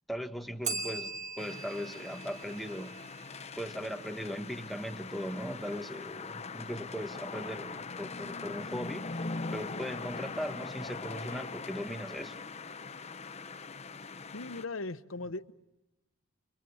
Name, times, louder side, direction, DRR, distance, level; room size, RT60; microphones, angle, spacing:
voice 1, 0.1-3.0 3.6-12.4, equal, ahead, 1.4 m, -39 dB
Bell, 0.6-3.5, right 4 dB, 40° right, 2.9 m, -40 dB
sound 1, 1.4-14.7, left 4 dB, 35° left, 0.9 m, -42 dB
voice 2, 14.3-15.5, left 3 dB, 85° left, 0.9 m, -38 dB
30.0 x 24.5 x 7.1 m
head